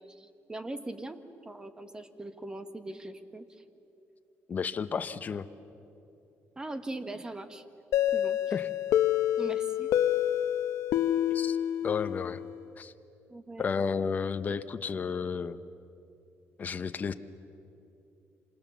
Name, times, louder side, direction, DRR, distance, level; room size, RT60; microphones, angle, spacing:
voice 1, 0.0-3.5 6.6-7.7 8.1-8.4 9.4-9.9 13.3-13.7, right 2 dB, 15° right, 9 dB, 1.4 m, -40 dB
voice 2, 4.5-5.5 8.5-8.7 11.3-11.6 11.8-12.4 12.8-12.9 13.6-15.6 16.6-17.1, left 6 dB, 35° left, 10 dB, 0.9 m, -32 dB
sound 1, 7.9-12.6, left 11 dB, 75° left, 0.9 m, -28 dB
28.0 x 26.5 x 7.1 m, 2.8 s
cardioid pair, 145°, 5 cm